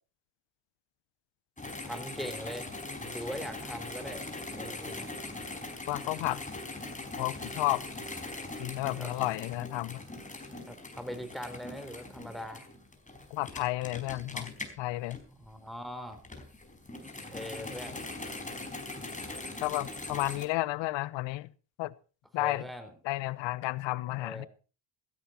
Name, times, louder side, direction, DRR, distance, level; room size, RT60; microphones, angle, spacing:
sound 1, 1.6-15.7 16.1-20.4, left 2 dB, 15° left, 4.7 m, -41 dB
voice 1, 1.8-2.7 3.1-4.2 4.5-5.1 9.0-9.1 10.7-12.7 15.4-16.2 17.1-18.0 22.4-22.9 24.2-24.5, equal, ahead, 4.1 m, -41 dB
voice 2, 5.9-6.4 7.2-7.8 8.6-10.0 13.3-14.5 14.8-15.2 19.6-21.5 21.8-21.9 22.3-22.7 23.0-24.5, left 18 dB, 75° left, 1.0 m, -32 dB
16.0 x 13.5 x 4.4 m
supercardioid pair, 70°, 45 cm